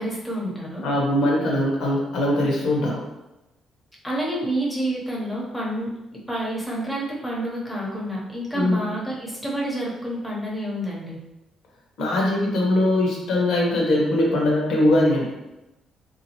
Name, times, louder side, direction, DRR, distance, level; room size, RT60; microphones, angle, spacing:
voice 1, 0.0-0.8 4.0-5.9 6.3-11.2, right 1 dB, ahead, -4 dB, 0.8 m, -28 dB
voice 2, 0.8-3.0 8.5-8.8 12.0-15.3, left 1 dB, 75° left, -2 dB, 1.1 m, -21 dB
3.6 x 2.7 x 2.9 m, 0.96 s
cardioid pair, 150°, 0 cm